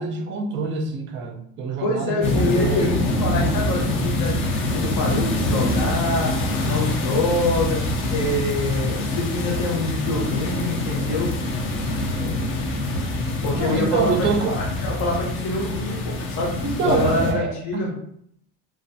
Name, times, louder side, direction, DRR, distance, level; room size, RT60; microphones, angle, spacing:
voice 1, 0.0-2.9 13.5-14.6 16.6-17.9, right 4 dB, 35° right, 3 dB, 0.4 m, -26 dB
voice 2, 1.8-4.4 4.6-6.3 6.6-7.8 8.1-11.3 13.4-16.5 16.8-17.9, left 2 dB, 65° left, -1 dB, 0.9 m, -25 dB
sound 1, 2.2-17.3, left 1 dB, 40° left, 0.4 m, -25 dB
2.4 x 2.3 x 2.6 m, 0.69 s
cardioid pair, 150°, 33 cm